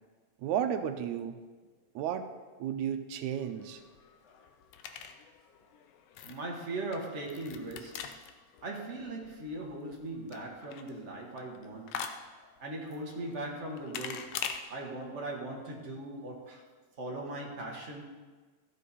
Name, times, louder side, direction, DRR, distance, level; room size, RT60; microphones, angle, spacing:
voice 1, 0.4-1.4 2.0-2.3 2.6-3.8, right 9 dB, 85° right, 2.1 m, -33 dB
sound 1, 3.4-14.6, left 8 dB, 75° left, 1.6 m, -44 dB
voice 2, 6.2-8.2 8.6-12.1 12.6-16.7 17.0-18.0, right 2 dB, 50° right, 0.8 m, -39 dB
13.5 x 7.4 x 4.1 m
omnidirectional pair, 3.3 m